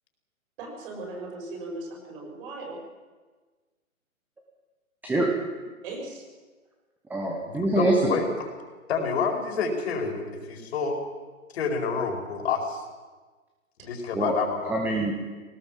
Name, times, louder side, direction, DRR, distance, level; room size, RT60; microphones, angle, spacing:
voice 1, 0.6-2.8 5.8-6.2, right 2 dB, 40° right, 1 dB, 6.5 m, -38 dB
voice 2, 5.0-5.3 7.1-8.2 14.1-14.4 14.7-15.1, right 2 dB, 5° right, 1 dB, 1.3 m, -24 dB
voice 3, 7.4-8.5 8.9-11.0 11.5-12.8 13.8-14.8, left 5 dB, 45° left, 3 dB, 4.7 m, -28 dB
20.0 x 18.5 x 7.7 m, 1.3 s
hypercardioid pair, 150°, 43 cm